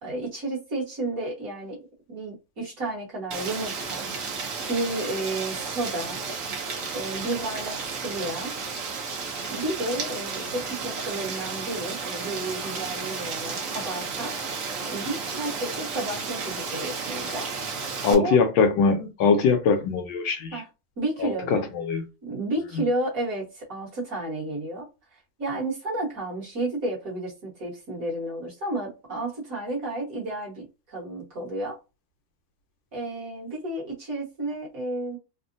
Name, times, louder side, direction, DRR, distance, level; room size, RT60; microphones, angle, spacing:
voice 1, 0.0-1.8 2.1-4.1 4.7-6.2 6.9-8.5 9.5-14.3 14.9-18.4 20.5-20.7 21.0-21.6 22.2-31.8 32.9-35.2, right 2 dB, 50° right, 1.4 m, -32 dB
Rain, 3.3-18.1, right 4 dB, 65° right, 0.8 m, -33 dB
voice 2, 18.0-20.6 21.2-22.1, left 5 dB, 75° left, 1.3 m, -22 dB
3.6 x 2.1 x 2.5 m
omnidirectional pair, 2.3 m